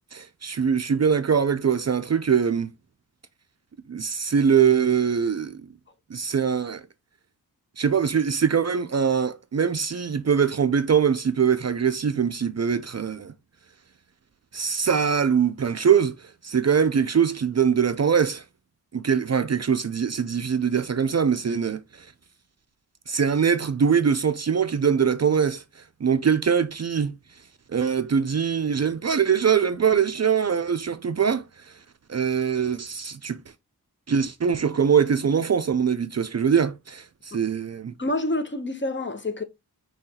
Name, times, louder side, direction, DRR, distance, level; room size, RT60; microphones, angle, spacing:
voice 1, 0.1-2.7 3.9-5.6 6.1-6.9 7.8-13.3 14.5-18.4 18.9-22.1 23.1-25.6 26.0-27.2 27.7-31.5 32.1-33.4 34.1-37.9, right 7 dB, 45° right, 0.4 m, -22 dB
voice 2, 38.0-39.4, left 2 dB, 30° left, 0.7 m, -27 dB
5.4 x 3.0 x 2.8 m
wide cardioid pair, 55°, 38 cm